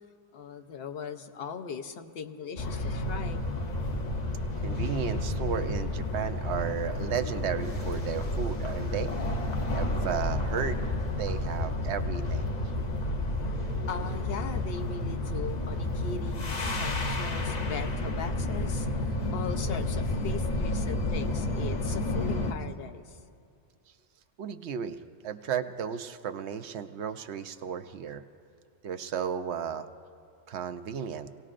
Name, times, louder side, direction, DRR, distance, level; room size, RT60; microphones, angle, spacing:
voice 1, 0.3-3.5 13.9-18.9 19.3-23.2, left 6 dB, 60° left, 7 dB, 0.9 m, -39 dB
sound 1, 2.6-22.5, left 1 dB, 40° left, 0.9 m, -31 dB
voice 2, 4.6-9.1 9.7-12.5 24.4-28.2 28.8-29.9 30.5-31.3, right 7 dB, 70° right, 8 dB, 0.9 m, -34 dB
25.0 x 18.0 x 2.5 m, 2.4 s
omnidirectional pair, 1.2 m